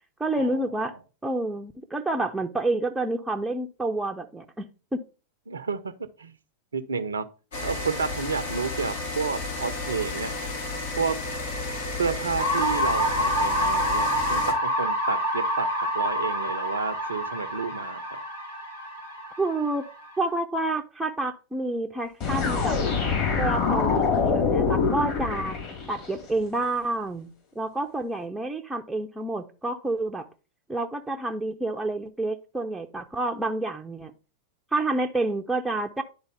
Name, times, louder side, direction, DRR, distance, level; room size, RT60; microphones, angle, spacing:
voice 1, 0.2-1.0 1.2-5.0 19.4-19.8 20.2-22.8 23.4-25.6 25.9-27.3 27.6-30.3 30.7-34.1 34.7-36.0, right 2 dB, 5° right, 0.6 m, -29 dB
voice 2, 5.5-5.9 6.2-6.4 6.7-7.3 7.6-10.4 11.0-11.1 12.0-18.2, right 5 dB, 70° right, 0.6 m, -30 dB
sound 1, 7.5-14.5, left 2 dB, 60° left, 1.7 m, -32 dB
sound 2, 12.4-20.2, equal, 80° left, 4.4 m, -27 dB
sound 3, 22.2-26.1, left 5 dB, 45° left, 3.2 m, -25 dB
10.5 x 4.0 x 3.5 m
figure-of-eight pair, 90°, 0 cm